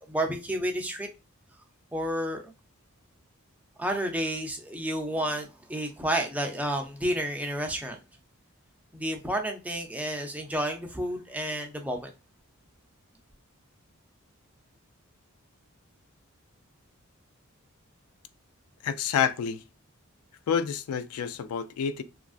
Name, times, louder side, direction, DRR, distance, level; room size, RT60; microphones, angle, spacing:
voice 1, 0.1-1.1 1.9-2.5 3.8-8.0 8.9-12.1, right 1 dB, 5° right, 0.4 m, -30 dB
voice 2, 18.8-19.6 20.5-22.0, left 7 dB, 85° left, 0.3 m, -28 dB
3.0 x 2.5 x 2.4 m
head